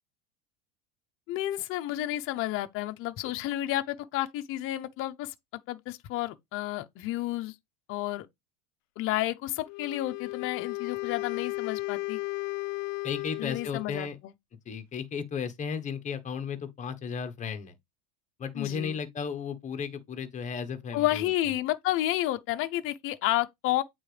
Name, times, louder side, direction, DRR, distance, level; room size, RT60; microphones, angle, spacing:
voice 1, 1.3-5.3 5.7-7.5 7.9-8.3 9.0-12.2 13.4-14.1 18.6-19.0 20.9-23.8, left 15 dB, 35° left, 0.7 m, -31 dB
Wind instrument woodwind instrument, 9.7-14.0, left 22 dB, 80° left, 0.5 m, -35 dB
voice 2, 13.0-14.2 14.6-17.7 18.4-21.3, left 6 dB, 20° left, 1.1 m, -34 dB
8.7 x 3.8 x 3.3 m
supercardioid pair, 145°, 38 cm